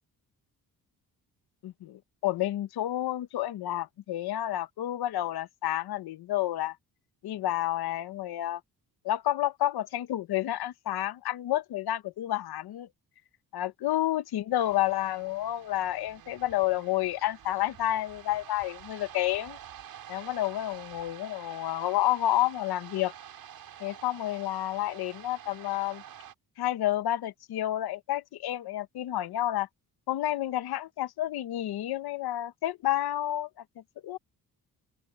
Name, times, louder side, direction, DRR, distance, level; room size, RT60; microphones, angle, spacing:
voice 1, 1.6-6.8 7.2-8.6 9.0-12.9 13.5-19.6 20.1-23.1 23.8-26.0 26.6-29.7 30.1-33.5 34.0-34.2, left 13 dB, 85° left, 1.1 m, -30 dB
sound 1, 14.5-26.3, right 10 dB, 70° right, 5.8 m, -48 dB
open air
cardioid pair, 140°, 37 cm